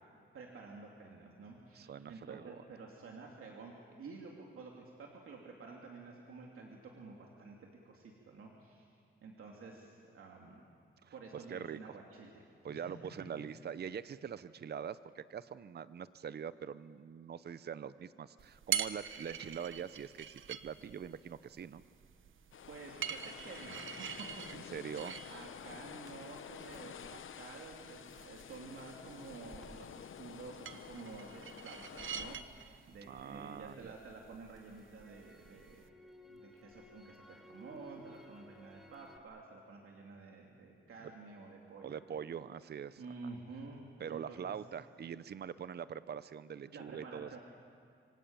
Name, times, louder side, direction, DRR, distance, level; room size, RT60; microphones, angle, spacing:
voice 1, 0.3-7.6 7.8-8.8 9.2-10.6 11.1-13.2 22.7-24.1 24.4-24.9 25.3-35.8 36.3-42.0 43.0-44.5 46.7-47.4, right 4 dB, 90° right, -1 dB, 3.0 m, -51 dB
voice 2, 1.7-2.6 11.0-11.1 11.5-11.8 12.6-21.8 24.5-25.4 33.1-33.9 41.8-43.0 44.0-47.4, right 8 dB, 50° right, 15 dB, 0.7 m, -44 dB
sound 1, 18.4-35.9, right 8 dB, 70° right, 1.0 m, -45 dB
sound 2, 22.5-32.4, left 9 dB, 70° left, 0.8 m, -50 dB
Crackle, 29.5-33.6 34.0-39.2, equal, ahead, 2.4 m, -58 dB
26.0 x 24.5 x 9.0 m, 2.3 s
wide cardioid pair, 115°, 21 cm